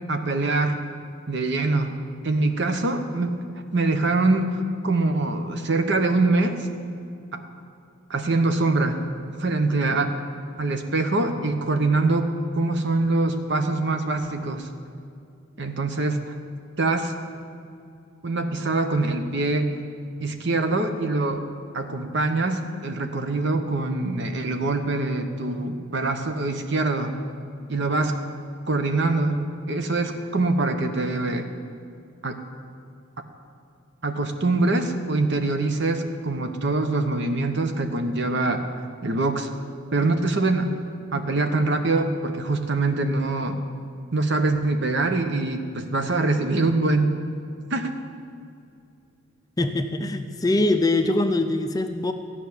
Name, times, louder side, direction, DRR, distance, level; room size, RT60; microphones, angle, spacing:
voice 1, 0.1-0.8 1.3-2.0 2.2-3.4 3.7-6.7 7.3-7.4 8.1-9.0 9.4-10.1 10.6-12.3 12.5-14.7 15.6-16.3 16.8-17.1 18.2-19.7 20.2-21.5 21.7-27.1 27.7-28.2 28.7-31.5 32.2-32.4 34.0-38.7 39.0-39.5 39.9-40.7 41.1-43.6 44.1-47.2 47.7-47.9, right 2 dB, 55° right, 7 dB, 0.9 m, -24 dB
voice 2, 49.6-52.1, left 2 dB, 15° left, 7 dB, 0.4 m, -23 dB
14.0 x 5.8 x 9.6 m, 2.5 s
head